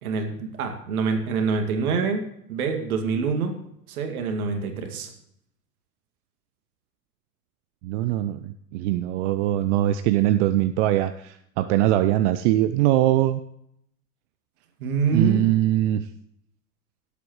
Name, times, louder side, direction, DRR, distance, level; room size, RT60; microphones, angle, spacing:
voice 1, 0.0-3.6 3.9-5.1 14.8-15.5, right 5 dB, 65° right, 5 dB, 2.4 m, -26 dB
voice 2, 7.8-13.4 15.1-16.0, right 14 dB, 50° right, 12 dB, 0.7 m, -22 dB
17.5 x 8.4 x 3.2 m, 0.72 s
hypercardioid pair, 90°, 47 cm